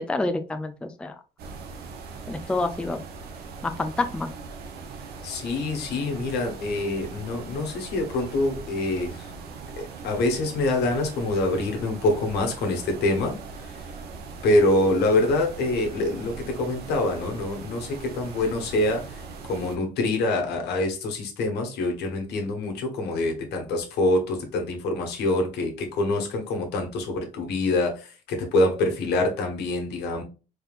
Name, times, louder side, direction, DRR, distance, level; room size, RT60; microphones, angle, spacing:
voice 1, 0.1-1.2 2.3-3.0 3.6-4.3, left 2 dB, 5° left, 7 dB, 0.4 m, -28 dB
sound 1, 1.4-19.8, right 4 dB, 70° right, 0.9 m, -40 dB
voice 2, 5.2-9.3 9.8-13.4 14.4-19.2 19.5-30.2, left 2 dB, 75° left, 2 dB, 1.3 m, -25 dB
4.2 x 3.6 x 2.4 m, 0.33 s
cardioid pair, 110°, 17 cm